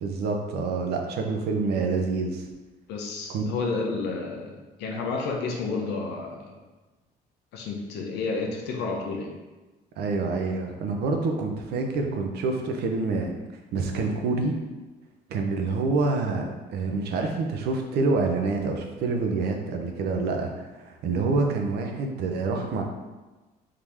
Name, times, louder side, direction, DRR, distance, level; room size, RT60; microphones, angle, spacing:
voice 1, 0.0-2.4 3.3-3.4 10.0-13.3 13.7-14.5 15.3-20.5 20.8-22.8, right 3 dB, 70° right, 3 dB, 0.8 m, -27 dB
voice 2, 2.9-6.6 7.5-9.3, left 4 dB, 85° left, 1 dB, 0.9 m, -31 dB
3.8 x 2.9 x 4.8 m, 1.2 s
cardioid pair, 110°, 17 cm